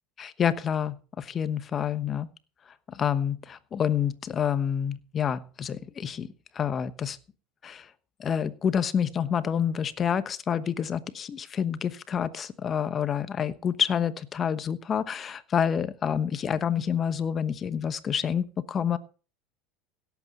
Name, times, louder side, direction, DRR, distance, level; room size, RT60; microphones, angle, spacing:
voice 1, 0.2-2.3 2.9-6.3 6.5-7.2 7.6-7.9 8.2-19.0, left 8 dB, 35° left, 14 dB, 1.1 m, -28 dB
17.0 x 8.3 x 4.3 m, 0.38 s
hypercardioid pair, 95°, 0 cm